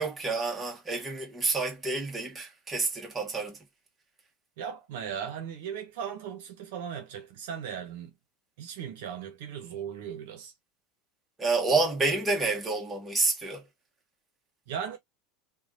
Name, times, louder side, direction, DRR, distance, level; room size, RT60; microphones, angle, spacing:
voice 1, 0.0-3.6 11.4-13.6, right 3 dB, 20° right, 1.4 m, -28 dB
voice 2, 4.6-8.1 8.6-10.5 14.7-15.0, right 8 dB, 75° right, 1.0 m, -37 dB
3.1 x 2.4 x 2.5 m
hypercardioid pair, 100°, 0 cm